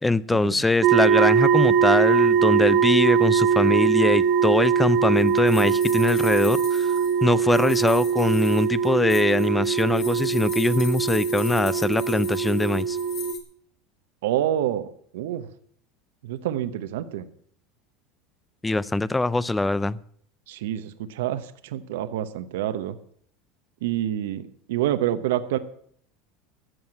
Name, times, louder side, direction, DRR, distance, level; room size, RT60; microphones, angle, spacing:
voice 1, 0.0-6.9 7.2-13.0 18.6-20.0, left 2 dB, 10° left, 0.4 m, -22 dB
sound 1, 0.8-13.3, right 7 dB, 45° right, 1.1 m, -22 dB
sound 2, 4.5-13.4, left 7 dB, 45° left, 2.9 m, -40 dB
voice 2, 14.2-15.5 16.2-17.3 20.5-23.0 23.8-25.6, right 12 dB, 85° right, 0.9 m, -27 dB
12.5 x 7.9 x 8.7 m
supercardioid pair, 140°, 0 cm